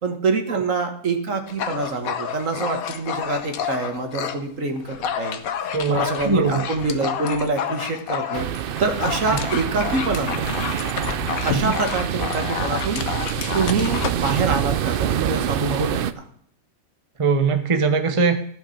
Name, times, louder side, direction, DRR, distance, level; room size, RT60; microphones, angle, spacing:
voice 1, 0.0-5.4 5.9-10.5 11.4-13.1 13.5-16.3, right 3 dB, 60° right, 5 dB, 1.8 m, -25 dB
Dog, 1.5-4.4 4.8-14.4, left 8 dB, 70° left, 1.3 m, -29 dB
voice 2, 5.7-6.6 11.5-11.8 17.2-18.4, right 4 dB, 25° right, 7 dB, 0.7 m, -21 dB
sound 1, 8.3-16.1, right 10 dB, 90° right, 0.4 m, -26 dB
14.0 x 5.8 x 5.8 m, 0.64 s
omnidirectional pair, 1.6 m